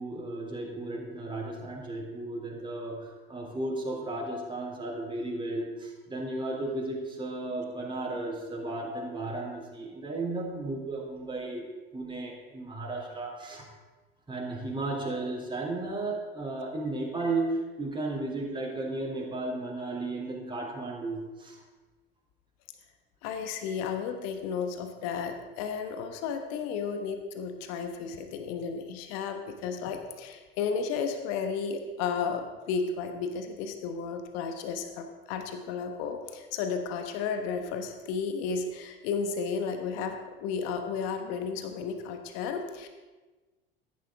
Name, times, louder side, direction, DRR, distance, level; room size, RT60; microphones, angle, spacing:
voice 1, 0.0-11.7 11.9-13.7 14.3-21.6, right 2 dB, 15° right, -2 dB, 3.2 m, -34 dB
voice 2, 23.2-42.9, left 5 dB, 55° left, 6 dB, 1.4 m, -33 dB
14.5 x 10.5 x 3.6 m, 1.2 s
figure-of-eight pair, 65°, 30 cm